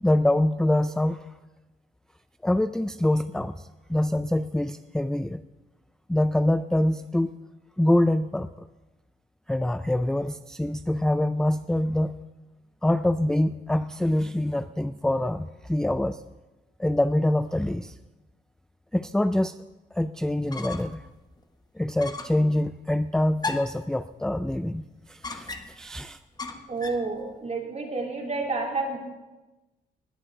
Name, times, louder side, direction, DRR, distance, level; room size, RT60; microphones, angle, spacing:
voice 1, 0.0-1.3 2.4-3.6 3.9-5.4 6.1-7.4 7.8-8.5 9.5-12.2 12.8-16.2 16.8-17.9 18.9-19.6 19.9-21.0 21.8-26.2, left 1 dB, 5° left, 12 dB, 0.3 m, -25 dB
sound 1, 20.3-21.0 21.4-21.5 22.0-22.4 23.4-23.9 25.2-25.9 26.4-27.1, left 3 dB, 20° left, 1.2 m, -35 dB
voice 2, 26.7-29.0, right 3 dB, 35° right, 0 dB, 3.2 m, -29 dB
20.0 x 8.5 x 4.7 m, 1.1 s
cardioid pair, 90°, 20 cm